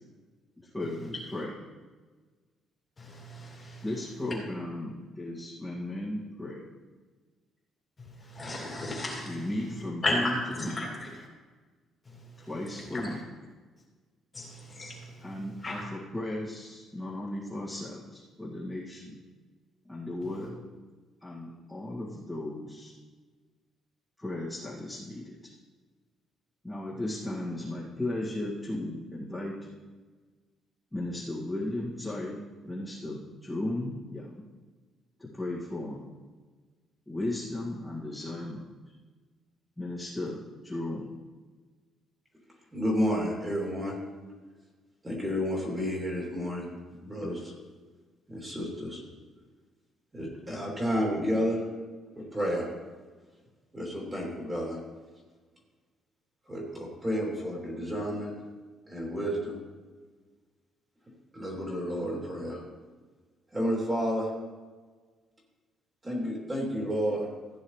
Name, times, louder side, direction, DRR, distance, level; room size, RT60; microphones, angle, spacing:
voice 1, 0.6-1.5 3.8-6.6 9.2-10.7 12.5-13.2 15.2-19.2 19.9-20.6 21.2-22.9 24.2-25.3 26.6-29.5 30.9-32.4 32.6-34.3 35.2-36.0 37.1-38.6 39.8-41.1, left 1 dB, 5° left, -8 dB, 2.1 m, -35 dB
voice 2, 3.0-3.8 8.0-9.5 10.0-11.3 12.1-12.5 12.9-13.2 14.3-15.8, left 1 dB, 25° left, -2 dB, 2.6 m, -35 dB
voice 3, 42.7-44.0 45.0-46.7 47.0-47.5 48.3-49.0 50.1-51.6 52.1-52.7 53.7-54.8 56.5-58.3 58.9-59.5 61.3-62.6 63.5-64.3 66.0-67.2, equal, 15° right, -3 dB, 3.1 m, -31 dB
15.5 x 9.5 x 3.2 m, 1.4 s
cardioid pair, 145°, 0 cm